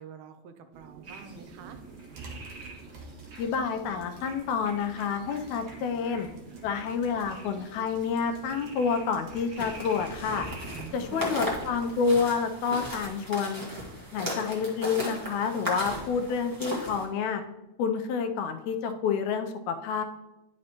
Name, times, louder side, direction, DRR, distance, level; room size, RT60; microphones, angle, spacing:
voice 1, 0.0-1.8 10.7-11.6 15.8-16.1, right 6 dB, 85° right, 8 dB, 2.0 m, -46 dB
sound 1, 0.7-12.0, right 4 dB, 60° right, 2.3 m, -48 dB
sound 2, 1.0-11.3, right 2 dB, 40° right, 1.9 m, -50 dB
voice 2, 3.4-6.3 6.6-10.5 10.9-13.6 14.1-17.4 17.8-20.0, left 5 dB, 90° left, 7 dB, 2.0 m, -29 dB
sound 3, 9.6-17.0, equal, 20° right, 0.5 m, -36 dB
10.5 x 5.2 x 2.9 m, 1.0 s
omnidirectional pair, 3.3 m